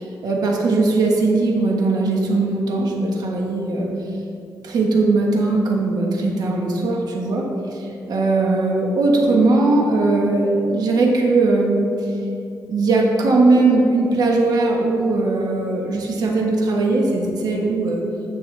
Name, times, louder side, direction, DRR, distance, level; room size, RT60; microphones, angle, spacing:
voice 1, 0.2-3.9 4.6-7.8 8.1-11.9 12.7-18.0, right 3 dB, 70° right, -1 dB, 1.4 m, -19 dB
9.9 x 6.8 x 3.4 m, 2.7 s
cardioid pair, 105°, 7 cm